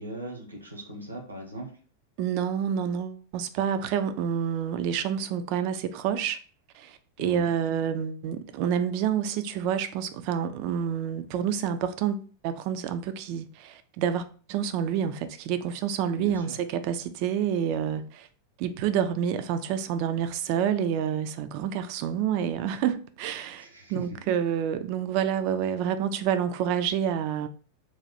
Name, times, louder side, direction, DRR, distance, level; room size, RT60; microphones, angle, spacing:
voice 1, 0.0-1.7 7.2-7.5 16.1-16.6 23.6-24.0, right 1 dB, 80° right, 0.9 m, -39 dB
voice 2, 2.2-6.4 6.8-18.3 18.6-23.6 23.9-27.5, right 8 dB, 45° right, 0.4 m, -28 dB
3.0 x 2.3 x 4.0 m
figure-of-eight pair, 90°, 0 cm